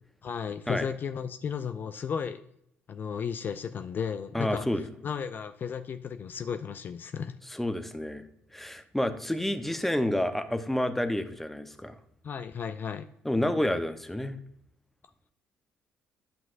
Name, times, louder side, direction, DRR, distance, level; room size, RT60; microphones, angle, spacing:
voice 1, 0.2-2.4 2.9-7.3 12.2-13.1, left 7 dB, 45° left, 9 dB, 0.4 m, -34 dB
voice 2, 4.3-4.8 7.5-8.2 8.5-12.0 13.2-14.4, left 1 dB, 5° left, 9 dB, 0.7 m, -29 dB
9.4 x 5.8 x 2.5 m, 0.75 s
supercardioid pair, 65°, 5 cm